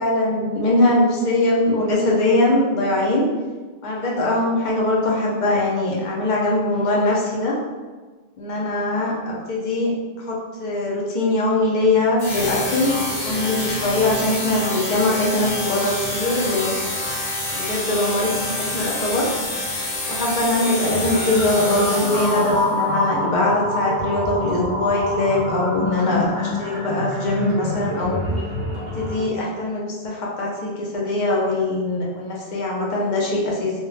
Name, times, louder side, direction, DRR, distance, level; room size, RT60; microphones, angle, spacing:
voice 1, 0.0-3.2 3.8-7.6 8.4-16.8 17.5-19.3 20.1-28.2 29.0-33.7, left 2 dB, 55° left, -3 dB, 0.6 m, -22 dB
sound 1, 12.2-22.7, left 1 dB, 80° left, 0.9 m, -27 dB
sound 2, 20.9-29.3, left 1 dB, 40° right, 0.5 m, -26 dB
2.2 x 2.1 x 3.1 m, 1.4 s
omnidirectional pair, 1.1 m